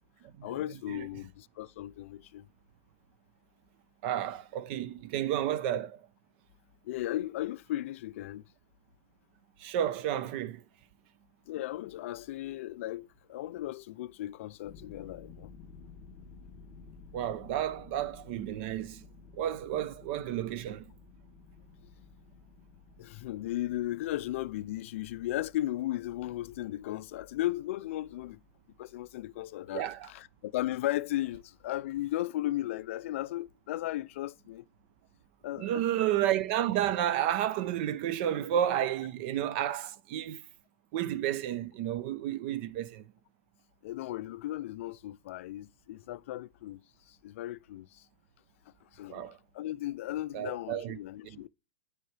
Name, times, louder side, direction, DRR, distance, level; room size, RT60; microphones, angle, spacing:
voice 1, 0.4-2.5 6.8-8.4 11.5-15.5 23.0-28.4 28.8-34.7 35.4-35.8 43.8-46.8 47.1-48.0 48.9-51.5, left 14 dB, 60° left, 0.4 m, -36 dB
voice 2, 4.0-6.0 9.6-10.6 17.1-19.0 19.3-20.9 29.7-30.1 35.6-40.4 40.9-43.1 49.1-49.4 50.3-51.0 51.2-51.4, right 11 dB, 45° right, 0.6 m, -31 dB
sound 1, 14.6-30.4, left 4 dB, 40° left, 1.6 m, -55 dB
9.4 x 4.6 x 3.2 m
supercardioid pair, 150°, 8 cm